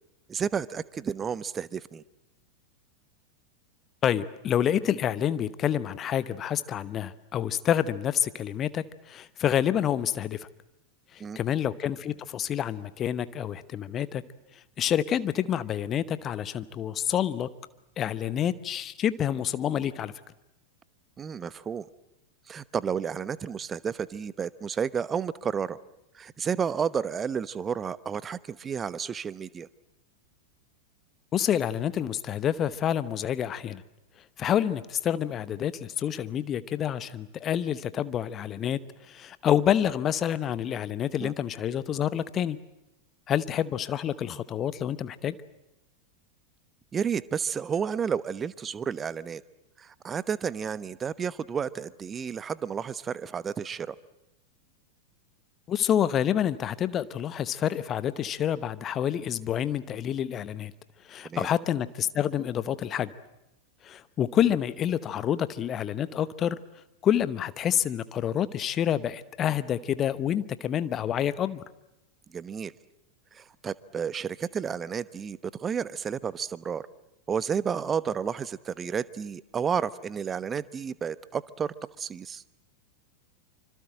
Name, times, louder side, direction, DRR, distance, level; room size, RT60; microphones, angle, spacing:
voice 1, 0.3-2.0 11.2-11.4 21.2-21.9 22.5-25.8 26.1-29.7 41.2-41.3 46.9-49.4 49.8-53.9 61.2-61.5 72.3-72.7 73.3-76.8 77.3-82.4, right 7 dB, 20° right, 18 dB, 1.0 m, -31 dB
voice 2, 4.0-10.5 11.1-14.2 14.5-17.5 18.0-20.1 31.3-33.8 34.4-42.6 43.3-45.4 55.7-60.7 61.0-63.1 63.8-66.6 67.0-71.6, left 10 dB, 30° left, 15 dB, 0.9 m, -28 dB
26.5 x 25.5 x 7.7 m, 0.90 s
figure-of-eight pair, 90°, 0 cm